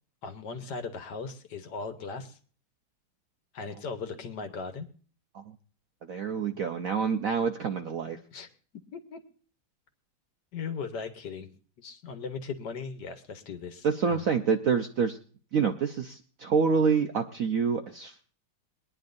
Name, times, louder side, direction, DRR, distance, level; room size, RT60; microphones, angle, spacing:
voice 1, 0.2-2.4 3.5-4.9 8.3-8.5 8.9-9.2 10.5-14.3, left 5 dB, 60° left, 8 dB, 1.5 m, -38 dB
voice 2, 6.0-8.2 13.8-15.2 15.5-18.3, right 6 dB, 65° right, 6 dB, 0.8 m, -27 dB
22.5 x 10.0 x 2.6 m, 0.42 s
omnidirectional pair, 2.2 m